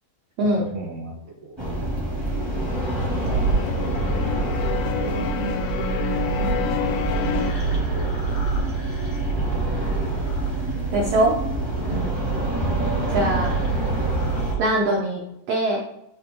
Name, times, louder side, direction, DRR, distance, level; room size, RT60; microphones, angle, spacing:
voice 1, 0.5-1.6 4.3-6.8 7.4-8.4 11.9-12.2, right 3 dB, 50° right, -5 dB, 2.0 m, -35 dB
sound 1, 1.6-14.5, right 1 dB, 15° right, 0.8 m, -27 dB
sound 2, 2.2-7.5, left 8 dB, 75° left, 2.0 m, -29 dB
sound 3, 3.2-14.6, right 6 dB, 45° left, 1.4 m, -29 dB
voice 2, 10.9-11.3 13.1-13.5 14.6-15.2 15.5-15.8, right 1 dB, 85° right, -1 dB, 1.4 m, -21 dB
11.0 x 5.1 x 2.3 m, 0.83 s
omnidirectional pair, 4.2 m